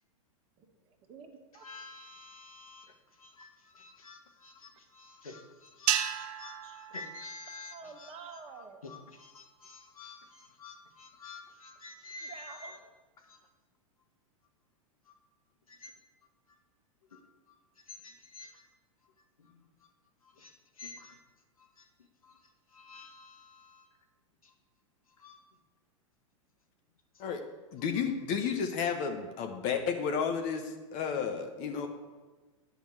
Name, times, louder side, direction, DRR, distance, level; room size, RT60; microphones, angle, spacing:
voice 1, 1.1-1.7 7.7-8.8 12.2-12.8, right 5 dB, 35° right, 3 dB, 1.6 m, -48 dB
voice 2, 1.6-2.9 3.2-8.1 8.8-12.7 13.2-13.4 15.7-15.9 17.1-17.2 17.9-18.6 19.4-19.5 20.2-21.2 21.8-21.9 22.2-22.4 22.7-23.9 24.4-24.5 25.2-25.4, left 3 dB, 90° left, 5 dB, 1.5 m, -49 dB
sound 1, 5.9-8.3, right 11 dB, 50° right, 0.7 m, -34 dB
voice 3, 27.7-31.9, left 6 dB, 45° left, 6 dB, 1.1 m, -32 dB
8.9 x 5.1 x 7.8 m, 1.3 s
hypercardioid pair, 105°, 18 cm